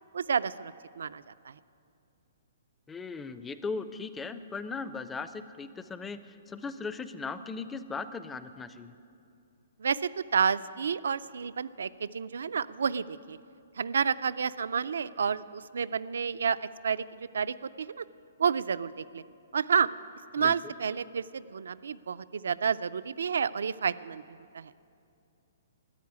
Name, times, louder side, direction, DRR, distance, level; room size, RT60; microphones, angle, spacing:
voice 1, 0.1-1.2 9.8-13.4 13.8-17.1 17.3-18.0 18.4-19.2 19.5-19.9 20.3-24.2 24.5-24.7, right 6 dB, 85° right, 17 dB, 0.4 m, -30 dB
voice 2, 2.9-8.9 20.4-20.5, left 4 dB, 5° left, 11 dB, 0.4 m, -38 dB
13.5 x 9.6 x 9.5 m, 2.6 s
hypercardioid pair, 170°, 0 cm